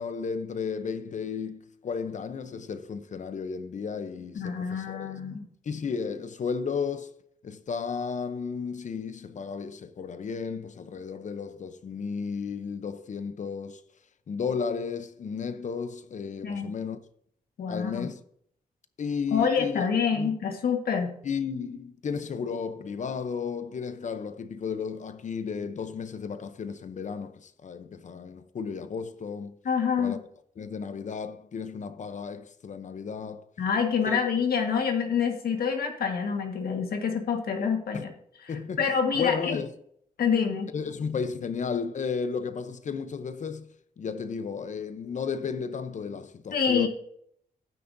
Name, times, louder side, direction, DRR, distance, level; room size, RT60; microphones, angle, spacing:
voice 1, 0.0-5.1 5.6-7.1 7.4-13.8 14.3-17.0 17.7-18.2 19.0-20.4 21.2-29.6 30.0-30.2 30.6-33.5 34.1-34.2 37.9-38.1 38.5-38.8 39.1-39.7 40.7-43.7 44.0-46.9, left 5 dB, 55° left, 0.7 m, -33 dB
voice 2, 4.3-5.4 16.4-16.7 17.6-18.1 19.3-21.1 29.6-30.2 33.6-38.1 38.4-39.6 40.2-40.7 46.5-46.9, left 6 dB, 90° left, 1.5 m, -27 dB
12.5 x 9.6 x 2.6 m
wide cardioid pair, 130°, 15 cm